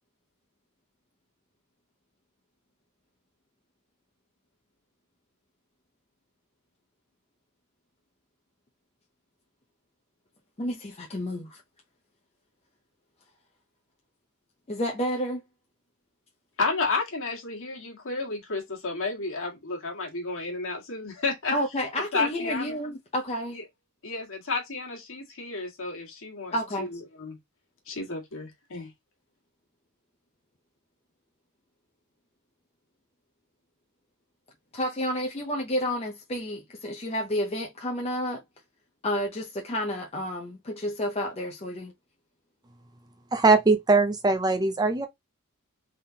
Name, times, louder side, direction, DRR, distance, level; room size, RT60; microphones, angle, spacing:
voice 1, 10.6-11.6 14.7-15.4 21.5-23.6 26.5-26.9 34.7-38.4 39.0-41.9, equal, 30° left, 0.7 m, -30 dB
voice 2, 16.6-21.5 22.1-22.8 23.5-23.6 24.0-27.4 27.9-28.9, left 3 dB, 65° left, 1.7 m, -32 dB
voice 3, 43.3-45.1, right 3 dB, 20° right, 0.6 m, -21 dB
3.7 x 3.5 x 2.8 m
head